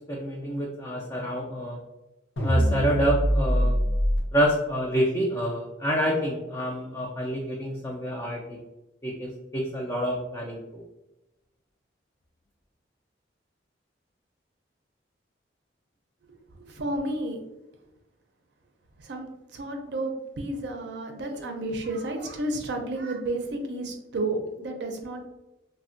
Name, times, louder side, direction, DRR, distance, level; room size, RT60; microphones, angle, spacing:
voice 1, 0.1-1.8 2.4-3.7 4.3-8.6 9.0-10.6, equal, 15° left, -3 dB, 0.3 m, -27 dB
sound 1, 2.4-4.2, equal, 85° left, 0.6 m, -23 dB
voice 2, 16.5-17.4 19.0-19.3 19.5-25.2, right 2 dB, 65° right, 3 dB, 0.4 m, -31 dB
3.3 x 2.1 x 2.5 m, 0.97 s
head